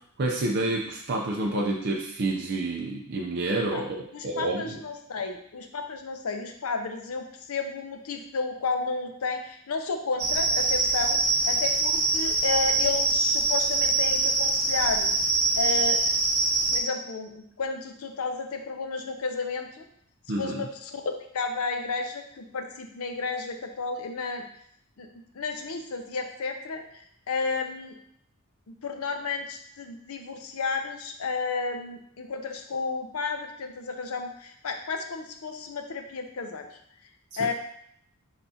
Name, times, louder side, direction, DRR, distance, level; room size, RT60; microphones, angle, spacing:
voice 1, 0.2-4.8 20.3-20.6, right 2 dB, 45° right, -1 dB, 0.4 m, -29 dB
voice 2, 4.1-15.1 15.6-16.0 16.7-19.9 20.4-21.0 21.3-24.4 25.0-25.1 25.3-28.0 28.7-36.7 37.4-37.5, left 4 dB, 75° left, 5 dB, 0.6 m, -32 dB
sound 1, 10.2-16.8, right 3 dB, 65° right, 1.0 m, -24 dB
5.6 x 3.4 x 2.7 m, 0.68 s
head